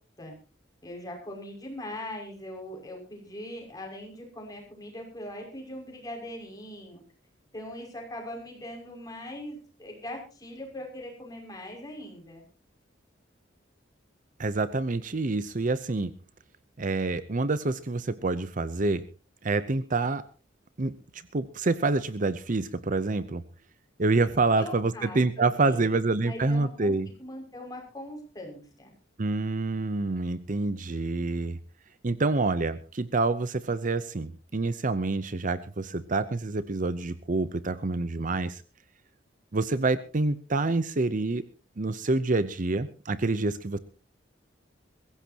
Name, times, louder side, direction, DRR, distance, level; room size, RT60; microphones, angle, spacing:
voice 1, 0.8-7.0 7.5-12.5 24.5-28.9, left 1 dB, 20° left, 0 dB, 6.0 m, -41 dB
voice 2, 14.4-16.1 16.8-19.0 19.4-20.2 20.8-23.4 24.0-27.1 29.2-31.6 32.0-38.6 39.5-41.4 41.8-43.8, right 3 dB, 45° right, 14 dB, 0.7 m, -27 dB
22.5 x 15.5 x 2.9 m, 0.35 s
head